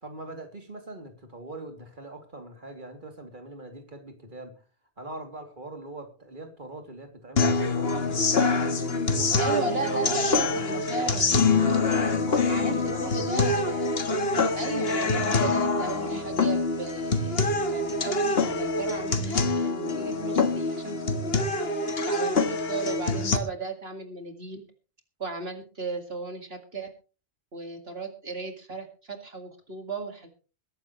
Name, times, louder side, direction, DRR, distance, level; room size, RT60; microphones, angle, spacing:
voice 1, 0.0-4.5 5.0-11.8 12.3-13.6, right 1 dB, 50° right, 4 dB, 3.0 m, -42 dB
sound 1, 7.4-23.4, left 3 dB, 65° left, 1.7 m, -25 dB
voice 2, 9.3-11.3 12.5-13.9 14.5-24.6 25.2-26.9 27.5-30.3, right 3 dB, 65° right, 5 dB, 2.3 m, -35 dB
22.0 x 12.0 x 3.1 m, 0.36 s
omnidirectional pair, 1.1 m